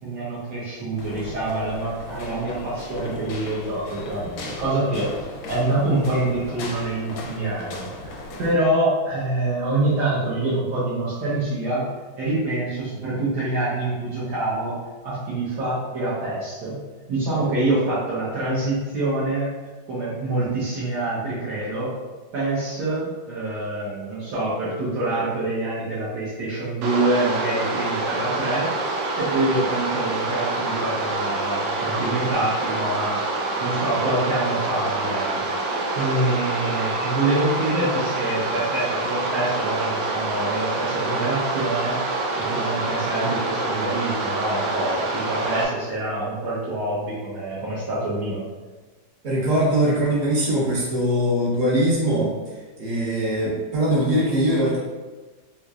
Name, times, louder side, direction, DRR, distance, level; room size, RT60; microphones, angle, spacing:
voice 1, 0.0-7.9 8.4-11.9 12.2-14.7 15.0-16.8 17.1-19.5 19.9-21.9 22.3-28.7 29.2-33.2 33.6-35.4 35.9-42.0 42.4-48.4, right 2 dB, 70° right, -10 dB, 1.4 m, -26 dB
sound 1, 1.0-8.6, left 2 dB, 90° left, 1.4 m, -37 dB
sound 2, 26.8-45.7, right 2 dB, 85° right, 1.3 m, -26 dB
voice 2, 49.2-52.3 52.8-54.8, right 1 dB, 45° right, -8 dB, 1.4 m, -21 dB
3.7 x 3.0 x 2.3 m, 1.3 s
omnidirectional pair, 2.0 m